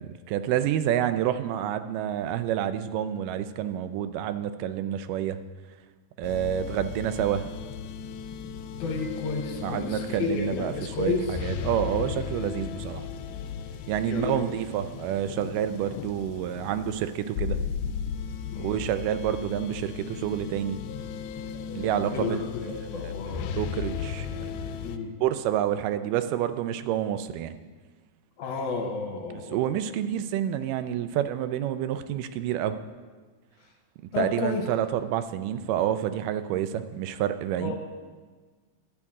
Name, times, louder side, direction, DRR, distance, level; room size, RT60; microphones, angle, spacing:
voice 1, 0.0-5.4 6.2-7.5 9.6-13.0 13.9-17.6 18.6-20.8 21.8-23.1 23.6-24.6 25.2-27.6 29.3-32.8 34.2-37.8, right 10 dB, 85° right, 11 dB, 2.2 m, -28 dB
sound 1, 6.2-25.0, left 7 dB, 85° left, 2.2 m, -36 dB
voice 2, 8.8-11.4 14.0-14.4 18.5-18.8 22.1-23.5 24.8-25.1 28.4-29.6 34.1-34.6 37.6-37.8, left 4 dB, 70° left, 2 dB, 2.4 m, -31 dB
12.5 x 9.0 x 3.6 m, 1.4 s
omnidirectional pair, 3.7 m